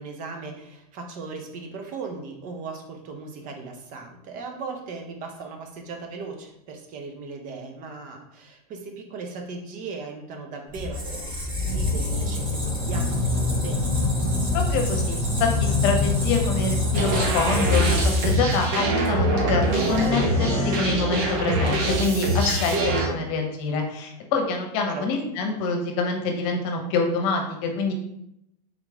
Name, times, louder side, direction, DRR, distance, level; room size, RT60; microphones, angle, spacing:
voice 1, 0.0-13.8 24.9-25.1, right 4 dB, 40° right, 3 dB, 0.8 m, -37 dB
Squeak, 10.7-18.6, left 2 dB, 25° right, 1.5 m, -24 dB
voice 2, 14.5-27.9, left 4 dB, 55° left, 3 dB, 0.9 m, -26 dB
sound 1, 16.9-23.1, right 1 dB, 55° right, 1.1 m, -24 dB
3.7 x 3.1 x 3.6 m, 0.79 s
hypercardioid pair, 125°, 20 cm